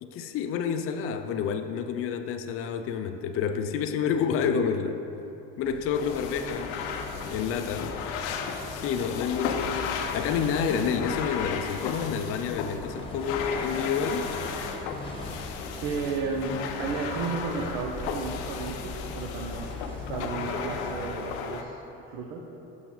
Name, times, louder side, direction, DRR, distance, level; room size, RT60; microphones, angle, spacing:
voice 1, 0.0-5.0 5.6-6.8 7.1-7.9 8.7-14.4, left 6 dB, 45° left, 7 dB, 0.4 m, -29 dB
sound 1, 5.6-21.4, left 3 dB, 15° left, 1.1 m, -41 dB
sound 2, 5.9-21.6, left 6 dB, 85° left, 0.6 m, -35 dB
voice 2, 15.8-21.8 22.1-22.4, right 4 dB, 75° right, 0 dB, 0.8 m, -33 dB
5.9 x 5.9 x 3.9 m, 2.9 s
supercardioid pair, 100°, 33 cm